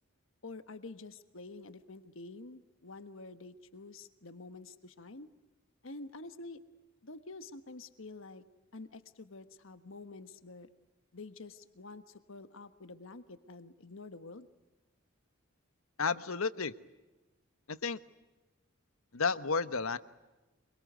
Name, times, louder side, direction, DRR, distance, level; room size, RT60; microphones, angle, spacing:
voice 1, 0.4-5.3 5.8-6.6 7.0-8.4 8.7-10.7 11.1-12.0 12.3-14.5, left 3 dB, 70° left, 10 dB, 1.4 m, -48 dB
voice 2, 16.0-16.7 17.7-18.0 19.1-20.0, left 5 dB, 85° left, 13 dB, 1.2 m, -32 dB
25.0 x 23.5 x 9.4 m, 1.1 s
head